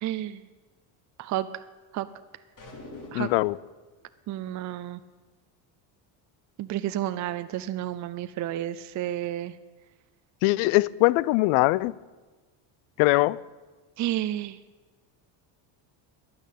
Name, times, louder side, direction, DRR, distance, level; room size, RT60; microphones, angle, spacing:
voice 1, 0.0-0.5 1.2-1.6 1.9-2.1 3.1-3.3 4.3-5.0 6.6-9.6 14.0-14.6, right 13 dB, 40° right, 0.5 m, -31 dB
sound 1, 2.6-3.6, left 2 dB, 40° left, 3.1 m, -44 dB
voice 2, 3.1-3.6 10.4-11.9 13.0-13.4, left 20 dB, 80° left, 0.5 m, -22 dB
12.0 x 10.5 x 8.3 m
cardioid pair, 130°, 47 cm